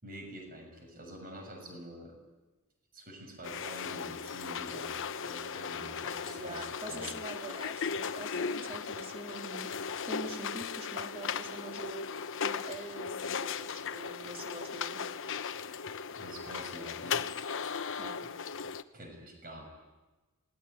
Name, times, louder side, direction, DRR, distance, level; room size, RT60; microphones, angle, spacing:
voice 1, 0.0-2.2 2.9-7.2 15.7-15.8 16.1-17.3 18.2-18.3 18.9-19.7, right 1 dB, 40° right, 3 dB, 6.8 m, -47 dB
sound 1, 3.4-18.8, left 6 dB, 60° left, 1.0 m, -37 dB
voice 2, 5.8-9.7 10.0-12.0 12.4-15.1 18.0-18.2, right 2 dB, 25° right, 3 dB, 3.2 m, -45 dB
27.5 x 20.5 x 9.5 m, 1.1 s
head